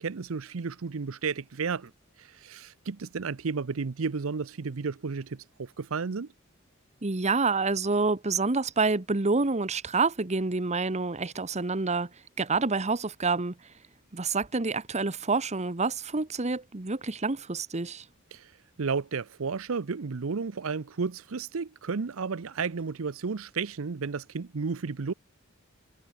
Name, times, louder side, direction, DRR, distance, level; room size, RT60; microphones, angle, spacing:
voice 1, 0.0-1.9 2.2-6.3 18.3-18.5 18.8-25.1, right 5 dB, 80° right, 0.7 m, -32 dB
voice 2, 7.0-12.1 12.4-13.5 14.1-18.0, right 3 dB, 35° right, 1.1 m, -27 dB
head